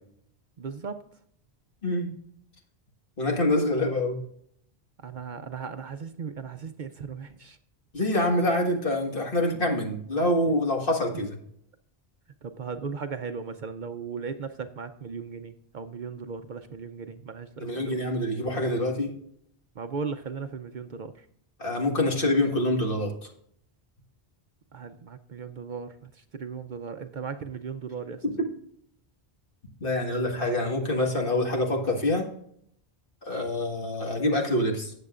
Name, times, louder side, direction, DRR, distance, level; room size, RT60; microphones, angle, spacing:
voice 1, 0.6-1.0 5.0-7.6 12.4-18.0 19.8-21.1 24.7-28.2, right 5 dB, 55° right, 9 dB, 0.6 m, -37 dB
voice 2, 1.8-2.1 3.2-4.2 7.9-11.4 17.6-19.1 21.6-23.3 28.4-28.5 29.8-32.3 33.2-34.9, left 1 dB, 55° left, 1 dB, 1.9 m, -26 dB
13.5 x 8.6 x 2.4 m, 0.68 s
omnidirectional pair, 1.1 m